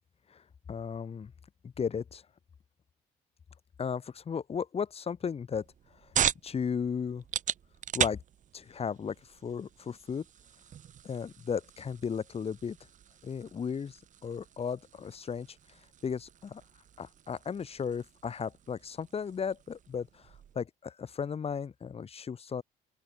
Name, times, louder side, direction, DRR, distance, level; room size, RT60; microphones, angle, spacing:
voice 1, 0.7-1.3 1.6-2.2 3.8-5.6 6.4-7.2 7.9-8.2 8.5-10.2 11.0-12.8 13.2-15.5 16.0-16.6 17.0-22.6, left 6 dB, 35° left, 3.6 m, -35 dB
sound 1, 5.5-20.6, right 9 dB, 50° right, 1.6 m, -39 dB
open air
cardioid pair, 110°, 17 cm